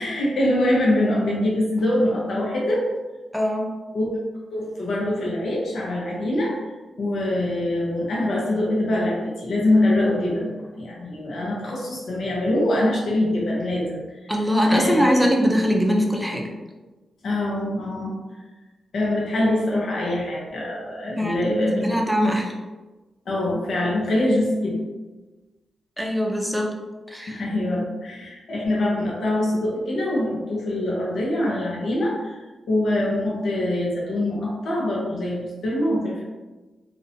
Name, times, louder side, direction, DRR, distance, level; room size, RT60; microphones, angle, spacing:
voice 1, 0.0-2.8 3.9-4.2 4.5-6.5 7.0-14.3 14.7-15.3 17.2-18.2 18.9-22.0 23.3-24.8 27.3-32.4 32.7-36.2, left 1 dB, 70° left, -4 dB, 0.6 m, -24 dB
voice 2, 3.3-3.7 14.3-16.5 21.2-22.5 26.0-26.7 27.1-27.4, equal, ahead, 0 dB, 0.5 m, -22 dB
2.5 x 2.1 x 2.7 m, 1.2 s
cardioid pair, 60°, 0 cm